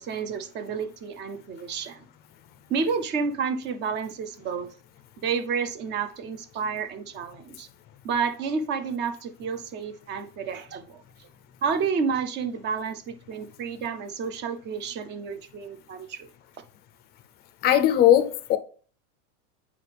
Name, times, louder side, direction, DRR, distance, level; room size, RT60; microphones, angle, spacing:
voice 1, 0.0-2.1 2.7-4.7 5.2-7.7 8.0-11.3 11.6-16.3, right 5 dB, 30° right, 0.6 m, -30 dB
voice 2, 17.6-18.6, left 11 dB, 25° left, 0.5 m, -19 dB
8.7 x 4.9 x 3.4 m
supercardioid pair, 155°, 38 cm